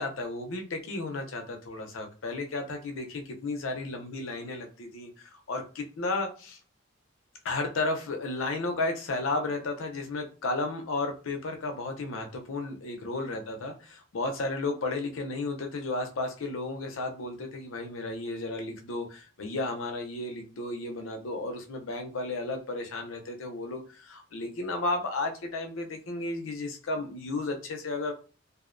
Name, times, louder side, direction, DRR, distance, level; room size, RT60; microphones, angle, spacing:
voice 1, 0.0-6.6 7.4-28.1, left 2 dB, 80° left, 4 dB, 0.5 m, -33 dB
2.5 x 2.0 x 2.5 m, 0.36 s
head